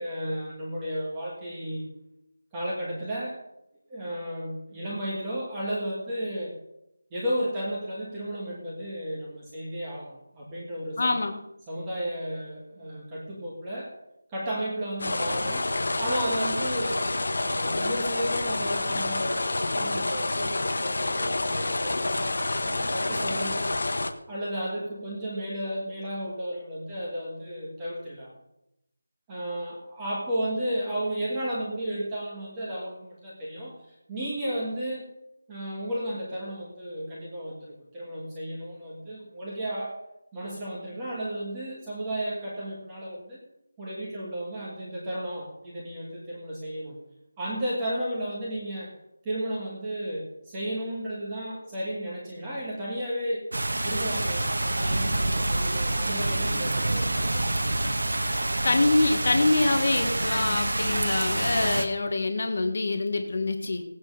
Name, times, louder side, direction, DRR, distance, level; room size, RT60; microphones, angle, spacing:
voice 1, 0.0-1.9 2.5-3.4 3.9-6.6 7.1-11.2 11.7-13.9 14.3-17.1 17.4-23.7 24.3-28.3 29.3-35.1 35.5-40.0 40.3-43.4 43.8-47.0 47.4-48.9 49.2-53.5 53.8-57.6, equal, 10° right, -6 dB, 1.5 m, -33 dB
voice 2, 11.0-11.4 58.6-63.8, left 2 dB, 35° left, 6 dB, 1.4 m, -25 dB
sound 1, 15.0-24.1, left 2 dB, 50° left, 1.3 m, -28 dB
sound 2, 53.5-61.9, right 1 dB, 75° right, 1.7 m, -27 dB
17.5 x 8.8 x 5.4 m, 0.84 s
figure-of-eight pair, 180°, 0 cm